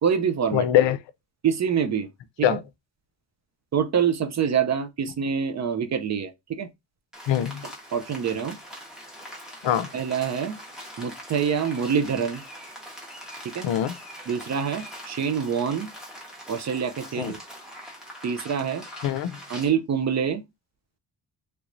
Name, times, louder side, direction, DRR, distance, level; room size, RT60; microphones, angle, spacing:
voice 1, 0.0-0.7 1.4-2.1 2.4-2.6 3.7-6.7 7.9-8.6 9.9-10.6 11.0-12.4 13.4-13.7 14.3-15.9 16.5-17.4 18.2-18.8 19.5-20.4, right 7 dB, 40° right, 0.4 m, -26 dB
voice 2, 0.5-1.0 2.4-2.6 7.3-7.7 9.6-9.9 13.6-13.9 17.2-17.3 19.0-19.4, left 11 dB, 85° left, 0.5 m, -22 dB
Rain, 7.1-19.7, equal, ahead, 1.1 m, -42 dB
3.3 x 3.0 x 2.5 m
wide cardioid pair, 165°, 43 cm